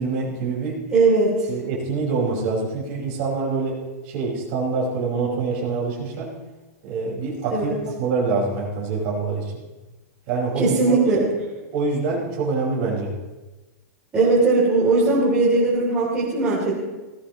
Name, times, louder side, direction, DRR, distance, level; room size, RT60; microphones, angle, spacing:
voice 1, 0.0-0.8 1.5-3.8 4.1-6.3 6.8-7.7 8.0-9.5 10.3-11.3 11.7-13.1, right 4 dB, 30° right, -4 dB, 5.5 m, -25 dB
voice 2, 0.9-1.3 7.5-7.7 10.6-11.2 14.1-16.7, right 3 dB, 10° right, -8 dB, 3.3 m, -19 dB
19.5 x 18.5 x 3.1 m, 1.1 s
supercardioid pair, 180°, 9 cm